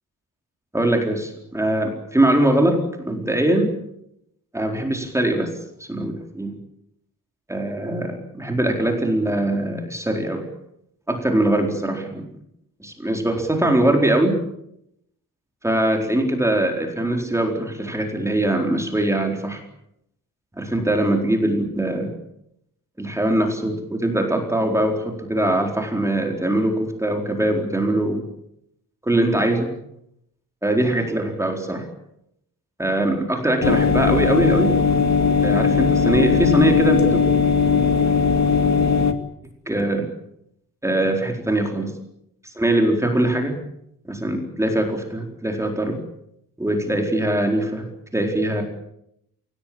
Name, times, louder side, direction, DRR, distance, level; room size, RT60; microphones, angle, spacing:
voice 1, 0.7-3.8 4.5-5.5 5.8-6.6 7.5-10.5 11.1-12.3 12.8-14.4 15.6-19.6 20.6-22.2 23.0-28.2 29.0-29.7 30.6-31.8 32.8-34.8 35.4-37.2 39.7-40.1 40.8-42.0 42.4-43.6 44.1-46.0 46.6-48.6, right 1 dB, 10° right, 3 dB, 4.3 m, -22 dB
sound 1, 33.6-39.1, left 5 dB, 50° left, 2.3 m, -18 dB
27.5 x 18.0 x 8.8 m, 0.78 s
wide cardioid pair, 165°, 34 cm